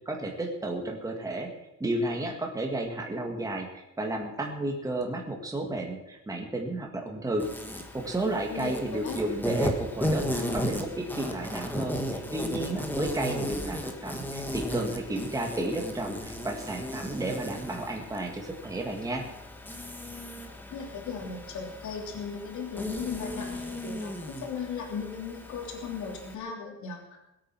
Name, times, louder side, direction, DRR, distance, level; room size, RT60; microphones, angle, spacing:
voice 1, 0.1-1.5 1.8-7.5 7.9-19.2, right 2 dB, 10° right, 1 dB, 2.0 m, -32 dB
Insect, 7.4-26.3, equal, 5° left, 1.6 m, -35 dB
voice 2, 8.5-9.2 20.7-27.2, left 5 dB, 70° left, 1 dB, 3.3 m, -37 dB
21.0 x 8.9 x 6.1 m, 0.90 s
cardioid pair, 170°, 30 cm